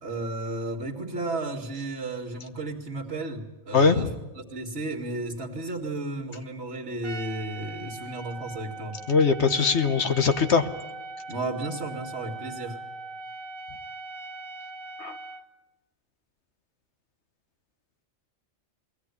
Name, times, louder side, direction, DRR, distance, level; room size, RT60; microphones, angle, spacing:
voice 1, 0.0-4.1 4.4-9.0 11.3-12.8, right 2 dB, 60° right, -2 dB, 2.2 m, -33 dB
voice 2, 3.7-4.1 9.1-10.7 15.0-15.2, left 5 dB, 60° left, 8 dB, 1.4 m, -21 dB
Trumpet, 7.0-15.5, right 2 dB, 90° right, 1.5 m, -40 dB
22.0 x 17.0 x 9.6 m, 1.1 s
omnidirectional pair, 1.4 m